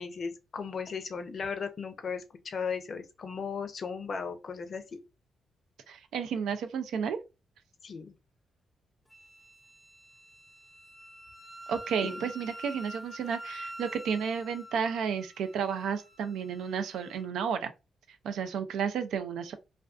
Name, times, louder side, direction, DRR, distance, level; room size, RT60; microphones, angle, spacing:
voice 1, 0.0-5.0 7.8-8.1 12.0-12.3, left 5 dB, 55° left, 0.5 m, -36 dB
voice 2, 5.9-7.2 11.7-17.7 18.2-19.5, right 7 dB, 85° right, 0.3 m, -32 dB
Wind instrument woodwind instrument, 9.1-17.3, right 1 dB, 5° left, 0.6 m, -47 dB
2.4 x 2.3 x 2.3 m
cardioid pair, 80°, 0 cm